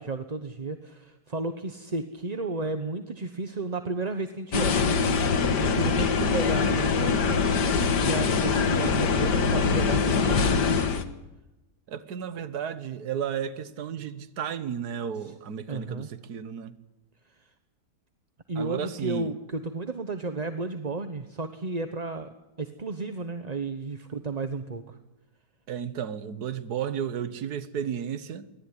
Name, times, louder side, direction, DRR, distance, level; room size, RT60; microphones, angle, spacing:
voice 1, 0.0-5.2 5.6-7.6 8.0-10.8 15.2-15.3 15.7-16.1 17.4-17.5 18.5-25.0, right 3 dB, 30° right, 1.0 m, -33 dB
sound 1, 4.5-11.0, left 5 dB, 75° left, 2.0 m, -23 dB
voice 2, 11.9-16.8 18.6-19.3 25.7-28.5, right 8 dB, 65° right, 1.8 m, -33 dB
24.0 x 18.0 x 9.9 m
omnidirectional pair, 1.8 m